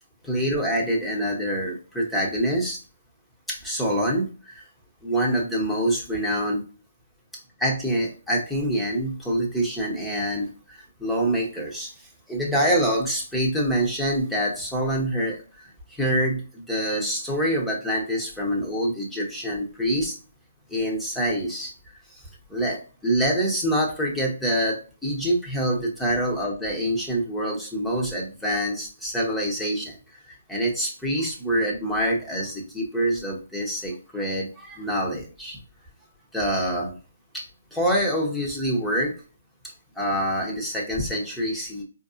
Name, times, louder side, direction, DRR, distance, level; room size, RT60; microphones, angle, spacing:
voice 1, 0.2-2.8 3.5-4.6 5.0-6.6 7.6-20.2 20.7-21.7 22.1-22.2 22.5-35.6 36.3-36.9 37.3-37.4 37.7-39.1 39.6-41.8, equal, 5° left, -3 dB, 1.1 m, -26 dB
4.5 x 2.8 x 2.4 m, 0.36 s
figure-of-eight pair, 140°, 0 cm